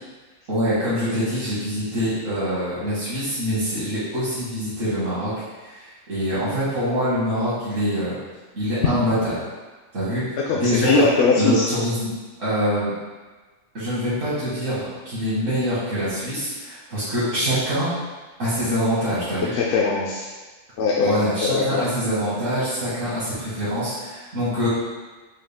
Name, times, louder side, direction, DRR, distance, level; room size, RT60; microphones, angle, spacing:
voice 1, 0.5-8.1 8.5-9.3 9.9-11.0 11.4-12.1 12.4-12.9 13.7-17.9 18.4-19.5 21.0-24.7, equal, 85° right, -12 dB, 1.9 m, -24 dB
voice 2, 10.5-11.7 19.5-20.3 20.8-21.8, left 4 dB, 70° left, -3 dB, 0.8 m, -21 dB
6.3 x 2.3 x 3.5 m, 1.3 s
omnidirectional pair, 1.3 m